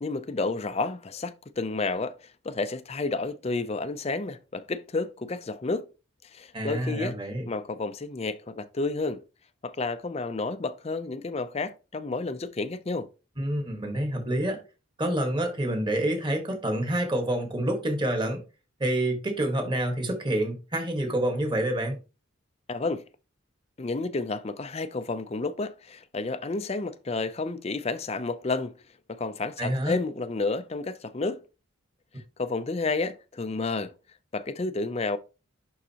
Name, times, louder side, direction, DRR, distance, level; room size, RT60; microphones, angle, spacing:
voice 1, 0.0-2.2 2.4-5.9 6.3-7.2 7.5-9.2 9.6-13.1 22.7-23.0 23.8-28.8 29.1-31.4 32.4-33.9 34.3-35.2, left 3 dB, 30° left, 0.5 m, -31 dB
voice 2, 6.5-7.4 13.4-14.6 15.0-18.4 18.8-22.0 29.6-30.0, right 1 dB, 25° right, 1.5 m, -27 dB
11.0 x 3.9 x 2.9 m
head